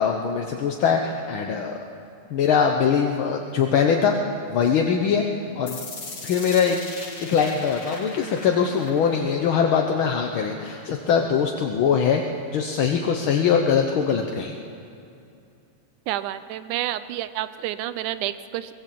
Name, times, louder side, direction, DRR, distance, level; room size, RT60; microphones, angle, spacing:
voice 1, 0.0-1.8 2.3-4.1 4.5-5.2 5.5-5.8 6.2-6.8 7.2-12.2 12.5-14.5, left 7 dB, 60° left, 2 dB, 1.4 m, -22 dB
sound 1, 5.7-11.7, left 3 dB, 40° left, 3.0 m, -40 dB
voice 2, 16.1-18.7, right 13 dB, 85° right, 13 dB, 2.2 m, -29 dB
23.5 x 18.5 x 7.6 m, 2.6 s
omnidirectional pair, 3.4 m